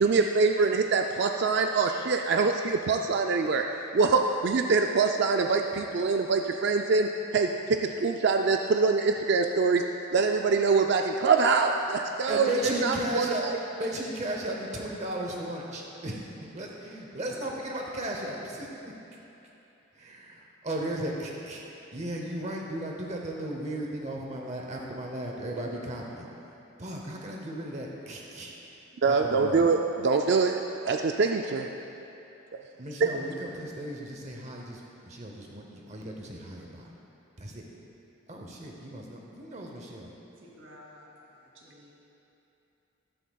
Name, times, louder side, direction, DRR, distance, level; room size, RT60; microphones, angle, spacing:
voice 1, 0.0-3.6 3.9-9.8 10.1-13.6 29.0-30.6 30.8-31.7, right 4 dB, 50° right, 3 dB, 0.3 m, -24 dB
voice 2, 12.3-13.4 13.7-18.9 19.9-21.6 21.9-26.3 26.8-28.5 29.1-29.7 32.8-36.9 37.4-37.7 38.3-40.1, right 1 dB, 30° right, -1 dB, 0.8 m, -35 dB
voice 3, 40.4-41.0 41.3-41.9, left 1 dB, 70° right, -4 dB, 2.5 m, -52 dB
14.0 x 11.5 x 2.3 m, 2.9 s
head